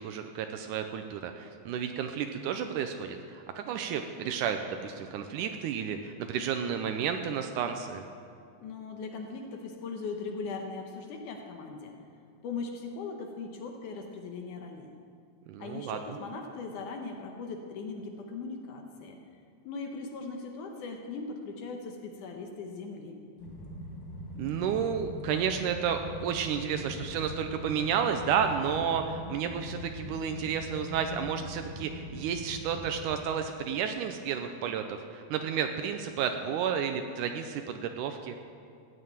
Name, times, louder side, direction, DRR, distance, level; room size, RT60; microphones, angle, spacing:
voice 1, 0.0-8.0 15.5-16.2 24.4-38.4, right 7 dB, 90° right, 6 dB, 1.8 m, -31 dB
voice 2, 8.6-12.0 12.4-14.9 15.6-19.2 19.6-23.2, left 4 dB, 70° left, 3 dB, 2.2 m, -39 dB
sound 1, 23.4-33.2, left 1 dB, 50° left, 1.8 m, -42 dB
16.0 x 6.6 x 8.9 m, 2.3 s
omnidirectional pair, 4.4 m